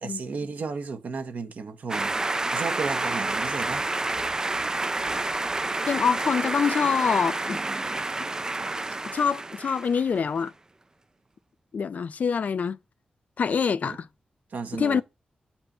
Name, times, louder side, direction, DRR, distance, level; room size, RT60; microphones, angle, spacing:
voice 1, 0.0-2.2 2.5-3.8 13.8-14.0 14.5-15.0, right 4 dB, 75° right, 1.2 m, -33 dB
sound 1, 1.9-10.2, right 2 dB, 25° right, 0.4 m, -29 dB
voice 2, 5.9-7.6 9.1-10.5 11.7-12.8 13.4-14.1 14.8-15.0, left 6 dB, 65° left, 0.4 m, -25 dB
8.9 x 4.4 x 5.3 m
wide cardioid pair, 120°, 3 cm